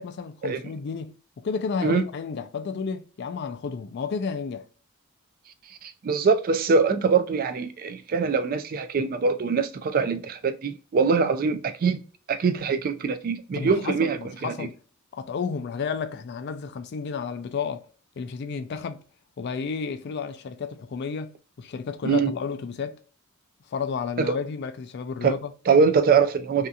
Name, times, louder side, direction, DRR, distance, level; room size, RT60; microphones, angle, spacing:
voice 1, 0.0-4.6 13.5-14.8 15.1-17.8 18.2-19.0 19.4-23.0 23.7-25.5, left 5 dB, 50° left, 0.3 m, -32 dB
voice 2, 5.8-12.0 12.3-14.7 22.0-22.3 24.2-24.4 25.2-25.4 25.7-26.7, right 5 dB, 40° right, 0.3 m, -23 dB
2.7 x 2.4 x 2.3 m
head